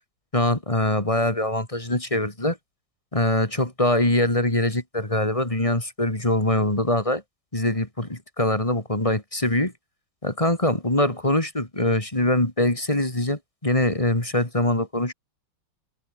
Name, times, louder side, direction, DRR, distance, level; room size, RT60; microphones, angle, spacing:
voice 1, 0.3-2.6 3.1-7.2 7.5-9.7 10.2-15.1, left 1 dB, 15° left, 3.1 m, -23 dB
omnidirectional pair, 2.1 m